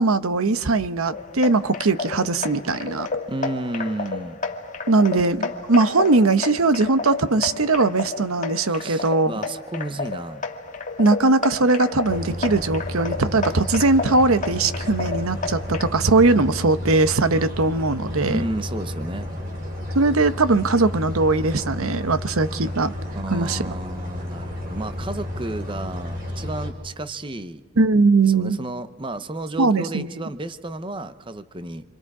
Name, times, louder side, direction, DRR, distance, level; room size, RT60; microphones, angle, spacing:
voice 1, 0.0-3.1 4.9-9.3 11.0-18.4 19.9-22.9 23.3-23.7 27.8-28.6 29.6-30.1, right 3 dB, 80° right, 1.0 m, -20 dB
sound 1, 1.1-15.9, left 4 dB, 35° left, 1.8 m, -32 dB
voice 2, 3.3-4.4 8.7-10.5 18.3-19.3 23.2-27.6 28.2-31.8, right 1 dB, 25° right, 0.7 m, -32 dB
sound 2, 12.1-26.7, left 1 dB, 40° right, 5.0 m, -32 dB
29.0 x 25.5 x 4.8 m
head